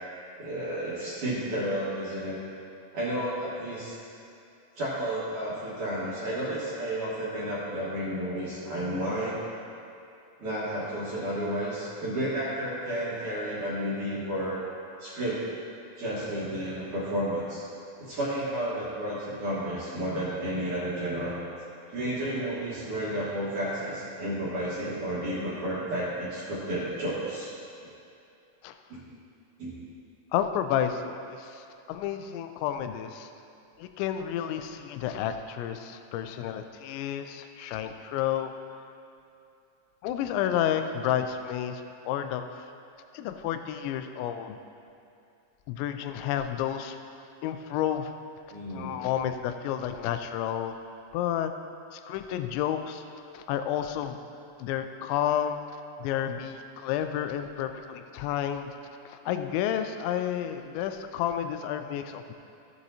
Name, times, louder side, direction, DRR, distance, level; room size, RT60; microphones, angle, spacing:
voice 1, 0.4-2.4 2.9-3.9 4.8-9.4 10.4-14.6 15.0-15.4 16.0-17.7 18.0-21.4 21.9-27.5 28.9-29.0 29.6-29.7 48.5-49.0, right 1 dB, 60° right, -9 dB, 2.5 m, -32 dB
voice 2, 30.3-33.3 33.8-38.5 40.0-42.4 43.1-44.6 45.7-47.0 47.4-48.1 48.7-50.8 51.1-51.5 51.9-53.0 53.3-54.2 54.6-55.6 56.0-58.8 59.1-62.3, left 10 dB, 85° left, 8 dB, 2.8 m, -31 dB
14.5 x 8.0 x 2.8 m, 2.6 s
omnidirectional pair, 5.2 m